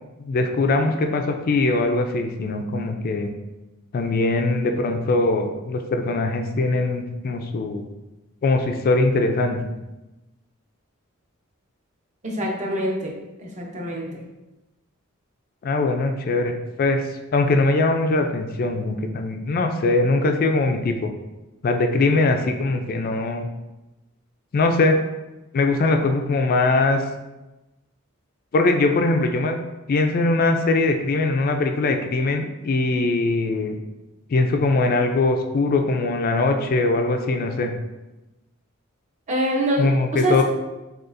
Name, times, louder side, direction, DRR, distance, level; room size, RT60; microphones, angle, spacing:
voice 1, 0.2-3.3 3.9-7.8 8.4-9.6 15.6-16.5 16.8-17.0 17.3-21.1 21.6-23.5 24.5-25.0 25.5-27.0 28.5-29.6 29.9-33.8 34.3-37.7 39.8-40.4, left 2 dB, 45° left, 5 dB, 0.3 m, -21 dB
voice 2, 12.2-13.1 13.4-14.2 39.3-39.9 40.1-40.4, right 1 dB, 35° right, -1 dB, 0.8 m, -24 dB
6.3 x 2.4 x 2.5 m, 1.0 s
head